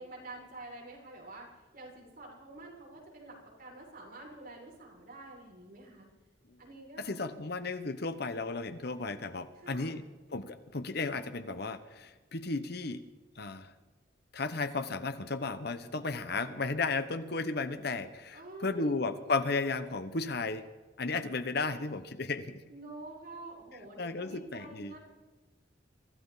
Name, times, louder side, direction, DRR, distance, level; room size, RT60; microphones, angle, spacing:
voice 1, 0.0-6.1 6.6-7.1 9.6-10.0 18.3-19.0 22.7-25.0, right 2 dB, 45° right, -3 dB, 5.9 m, -48 dB
voice 2, 7.0-10.0 10.3-13.0 13.4-13.7 14.3-20.7 21.0-22.6 24.0-24.9, left 3 dB, 55° left, 11 dB, 1.0 m, -34 dB
24.0 x 14.5 x 4.1 m, 1.2 s
head